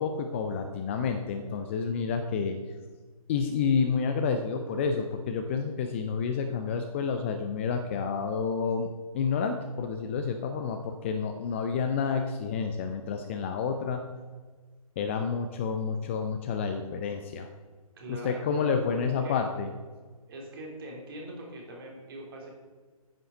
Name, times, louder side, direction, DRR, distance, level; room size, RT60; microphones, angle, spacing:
voice 1, 0.0-2.6 3.3-8.9 9.1-14.0 15.0-17.5 18.1-19.7, left 5 dB, 20° left, 6 dB, 0.5 m, -29 dB
voice 2, 18.0-19.4 20.3-22.5, right 1 dB, 40° right, -1 dB, 3.3 m, -42 dB
9.7 x 7.7 x 6.1 m, 1.4 s
figure-of-eight pair, 140°, 19 cm